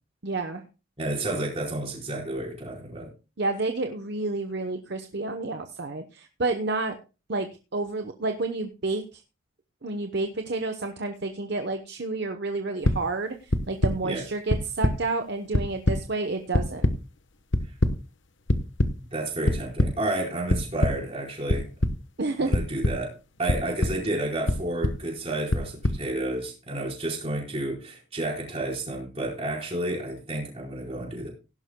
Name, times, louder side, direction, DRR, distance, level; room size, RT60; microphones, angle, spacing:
voice 1, 0.2-0.6 3.4-7.0 7.3-9.2 9.8-16.9 22.2-22.5, right 3 dB, 50° right, 6 dB, 0.9 m, -30 dB
voice 2, 1.0-3.1 14.0-14.2 19.1-21.7 22.4-31.3, right 1 dB, 30° right, -1 dB, 4.4 m, -31 dB
sound 1, 12.8-13.0 13.5-13.9 14.5-14.9 15.3-16.0 16.5-16.9 17.5-17.9 18.5-18.9 19.5-19.9 20.5-20.9 21.5-21.9 22.5-22.9 23.5-23.9 24.5-24.9 25.5-25.9, left 1 dB, 60° left, 1.0 m, -22 dB
17.5 x 11.5 x 2.2 m, 0.31 s
head